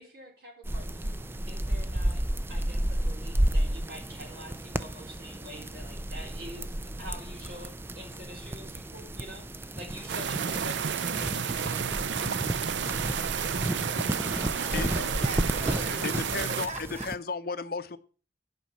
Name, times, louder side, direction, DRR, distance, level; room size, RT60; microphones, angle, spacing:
voice 1, 0.0-2.2 2.5-13.3 15.7-16.2, equal, 60° right, -6 dB, 3.8 m, -46 dB
sound 1, 0.6-17.2, right 1 dB, 15° right, 0.5 m, -32 dB
sound 2, 10.1-16.7, right 7 dB, 80° right, 0.5 m, -31 dB
voice 2, 13.7-16.1 16.4-17.1, equal, 40° right, 3 dB, 3.3 m, -41 dB
voice 3, 16.0-18.0, left 4 dB, 55° left, 12 dB, 0.8 m, -34 dB
11.0 x 5.5 x 7.3 m, 0.38 s
head